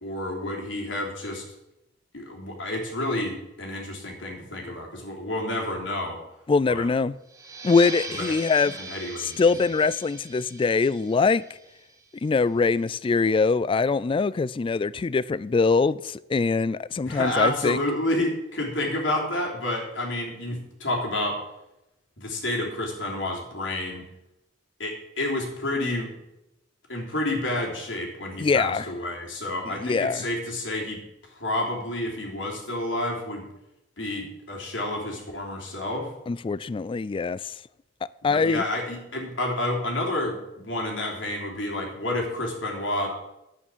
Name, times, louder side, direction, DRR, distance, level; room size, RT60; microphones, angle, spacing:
voice 1, 0.0-1.4 2.1-6.2 6.7-6.9 8.2-8.3 8.6-9.4 17.1-21.4 22.2-24.0 24.8-26.1 26.9-31.0 31.4-33.4 34.0-36.1 38.2-43.2, left 1 dB, 90° left, 3.3 m, -29 dB
voice 2, 6.5-7.1 7.6-8.7 9.2-11.4 12.2-17.8 28.4-28.9 29.8-30.3 36.3-37.5 38.2-38.6, left 4 dB, 25° left, 0.3 m, -23 dB
sound 1, 7.3-12.5, right 3 dB, 15° right, 1.7 m, -40 dB
11.0 x 9.0 x 6.2 m
head